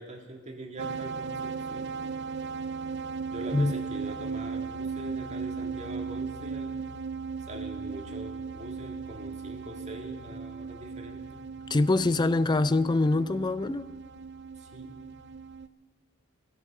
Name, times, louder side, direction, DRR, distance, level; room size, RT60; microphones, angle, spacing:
voice 1, 0.0-2.2 3.3-6.7 7.5-11.4 14.6-15.0, right 1 dB, 35° right, 1.9 m, -42 dB
sound 1, 0.8-15.7, right 5 dB, 55° right, 0.4 m, -37 dB
voice 2, 11.7-13.9, left 2 dB, 20° left, 0.4 m, -24 dB
16.5 x 12.5 x 6.0 m
head